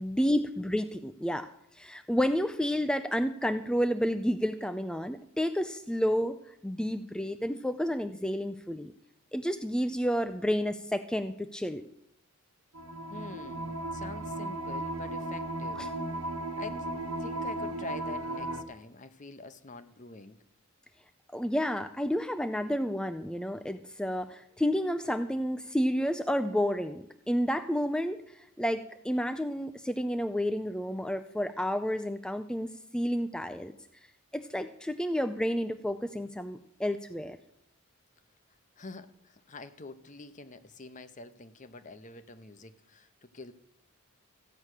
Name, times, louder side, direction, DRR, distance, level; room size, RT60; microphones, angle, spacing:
voice 1, 0.0-8.9 9.3-11.9 15.8-15.9 21.3-33.8 34.3-37.4, equal, 5° left, 8 dB, 0.4 m, -30 dB
sound 1, 12.7-18.6, right 1 dB, 75° right, 1.3 m, -35 dB
voice 2, 13.1-15.8 16.6-16.9 17.2-20.4 38.8-43.5, left 3 dB, 35° left, 12 dB, 0.8 m, -46 dB
15.0 x 8.7 x 6.5 m, 0.76 s
head